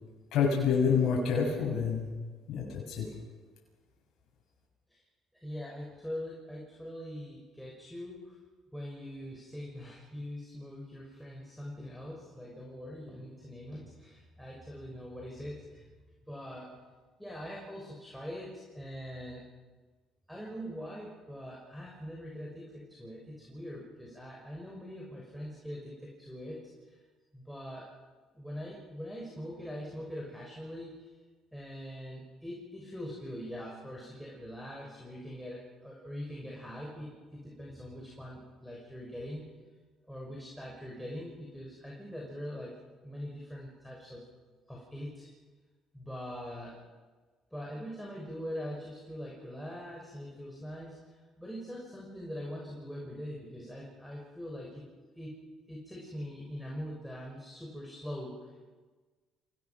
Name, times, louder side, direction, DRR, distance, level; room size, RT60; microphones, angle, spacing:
voice 1, 0.3-2.1 2.5-3.1, left 6 dB, 65° left, -2 dB, 6.7 m, -27 dB
voice 2, 5.3-8.4 8.7-15.9 16.2-16.7 17.2-19.4 20.3-27.0 27.3-27.9 28.3-31.1 31.5-39.5 40.1-42.8 43.0-44.2 44.7-45.3 45.9-46.8 47.5-54.9 55.1-55.4 55.7-58.7, equal, ahead, -3 dB, 6.5 m, -43 dB
27.5 x 18.5 x 6.1 m, 1.4 s
supercardioid pair, 80°, 0 cm